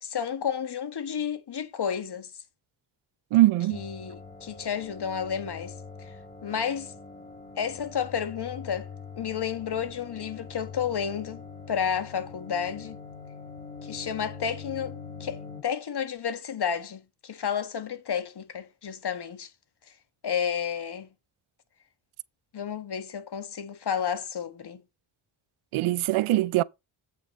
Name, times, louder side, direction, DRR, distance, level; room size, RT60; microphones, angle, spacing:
voice 1, 0.0-2.3 3.7-6.1 6.4-6.9 7.6-8.9 9.2-13.0 13.8-19.5 20.2-21.1 22.5-24.8, left 7 dB, 55° left, 1.6 m, -31 dB
voice 2, 3.3-3.8 25.7-26.6, right 16 dB, 80° right, 0.6 m, -22 dB
sound 1, 3.7-15.6, left 5 dB, 15° left, 5.9 m, -43 dB
8.4 x 5.7 x 5.2 m
cardioid pair, 100°, 48 cm